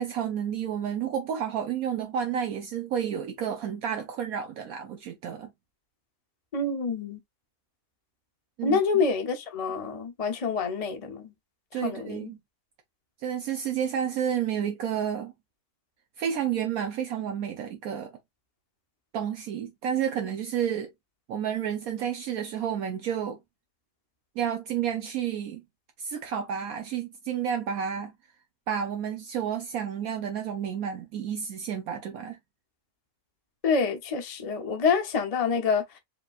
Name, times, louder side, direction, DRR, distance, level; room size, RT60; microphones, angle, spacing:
voice 1, 0.0-5.5 8.6-8.8 11.7-12.4 13.2-15.3 16.2-18.1 19.1-20.9 21.3-23.4 24.4-25.6 26.0-28.1 28.7-32.4, right 8 dB, 70° right, 1.1 m, -30 dB
voice 2, 6.5-7.2 8.6-11.3 11.8-12.3 33.6-35.8, left 5 dB, 40° left, 0.5 m, -27 dB
4.9 x 3.0 x 2.3 m
omnidirectional pair, 1.6 m